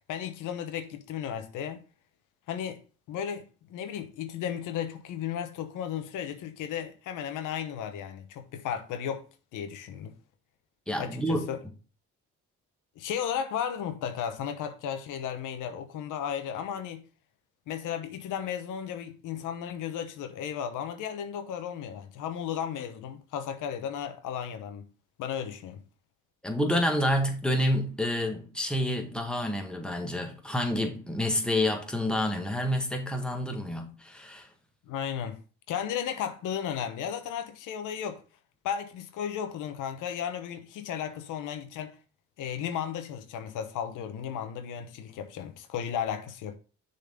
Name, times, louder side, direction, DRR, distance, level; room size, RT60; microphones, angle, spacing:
voice 1, 0.1-1.8 2.5-2.8 3.1-9.2 9.5-10.1 11.0-11.6 13.0-17.0 17.7-24.9 25.2-25.8 34.9-35.4 35.7-38.2 38.6-41.9 42.4-46.6, left 8 dB, 90° left, 1.0 m, -34 dB
voice 2, 10.9-11.5 26.4-34.5, left 1 dB, 5° left, 1.7 m, -28 dB
6.8 x 4.2 x 5.1 m
cardioid pair, 90°, 30 cm